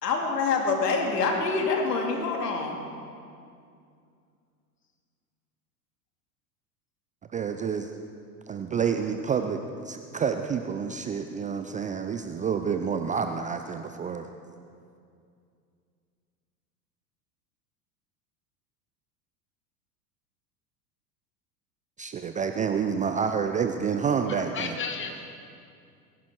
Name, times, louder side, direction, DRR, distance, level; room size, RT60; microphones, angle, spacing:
voice 1, 0.0-2.7, left 4 dB, 80° left, 2 dB, 2.4 m, -26 dB
voice 2, 1.2-1.7 24.0-25.2, left 5 dB, 25° left, 4 dB, 2.1 m, -36 dB
voice 3, 7.3-7.9 8.5-9.6 9.9-14.2 22.0-24.5, right 6 dB, 15° right, 7 dB, 0.5 m, -28 dB
21.0 x 11.0 x 4.5 m, 2.4 s
hypercardioid pair, 90°, 48 cm